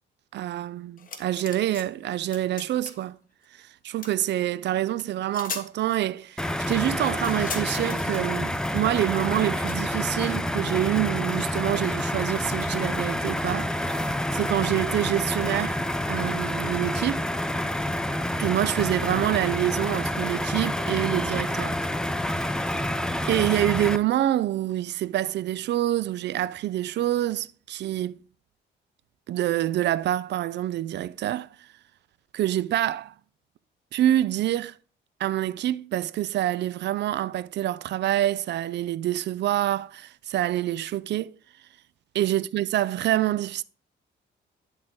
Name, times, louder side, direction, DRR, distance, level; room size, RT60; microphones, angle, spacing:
voice 1, 0.3-3.2 3.8-17.3 18.4-21.8 22.3-22.8 23.2-28.2 29.3-31.5 32.3-33.1 33.9-34.7 35.2-41.4 42.1-43.6, right 13 dB, 60° right, 0.4 m, -26 dB
sound 1, 1.0-1.8 2.1-3.0 4.0-4.1 5.0-5.1 5.3-5.7 7.2-8.1 9.7-9.8, left 5 dB, 45° left, 1.3 m, -37 dB
sound 2, 6.4-24.0, left 1 dB, 5° left, 0.5 m, -28 dB
11.0 x 3.8 x 3.7 m
cardioid pair, 90°, 20 cm